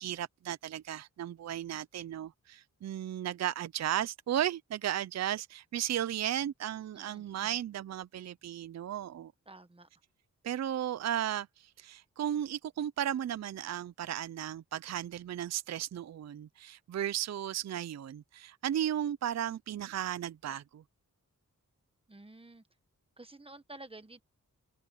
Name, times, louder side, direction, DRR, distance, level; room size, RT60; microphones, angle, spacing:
voice 1, 0.0-9.3 10.4-20.8, right 11 dB, 55° right, 0.4 m, -35 dB
voice 2, 6.9-7.5 9.5-9.9 22.1-22.6 23.2-24.2, right 2 dB, 15° right, 1.3 m, -51 dB
open air
wide cardioid pair, 170°, 33 cm